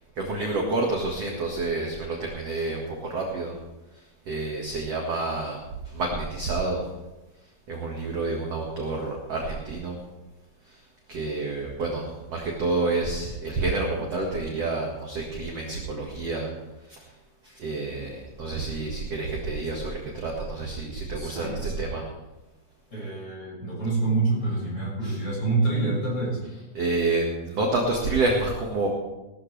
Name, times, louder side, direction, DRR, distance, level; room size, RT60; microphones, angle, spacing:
voice 1, 0.2-3.6 3.9-5.6 5.8-6.9 7.4-10.0 10.6-16.5 16.8-17.1 17.4-22.0 25.0-25.2 26.7-28.9, right 3 dB, 50° right, -1 dB, 2.2 m, -29 dB
voice 2, 21.1-21.7 22.9-26.4, right 3 dB, 25° left, -4 dB, 6.6 m, -27 dB
19.0 x 13.0 x 3.4 m, 1.0 s
omnidirectional pair, 4.9 m